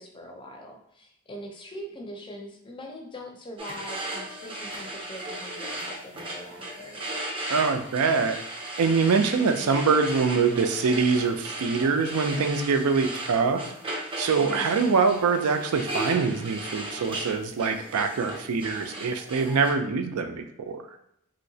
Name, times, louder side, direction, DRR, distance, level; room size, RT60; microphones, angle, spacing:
voice 1, 0.0-7.1 14.4-14.8, equal, 25° left, 2 dB, 0.5 m, -42 dB
sound 1, 3.6-19.7, right 1 dB, 25° right, 0.6 m, -36 dB
voice 2, 7.5-8.4 8.8-13.6 14.2-20.8, right 5 dB, 80° right, 7 dB, 0.4 m, -24 dB
3.1 x 2.8 x 2.7 m, 0.77 s
head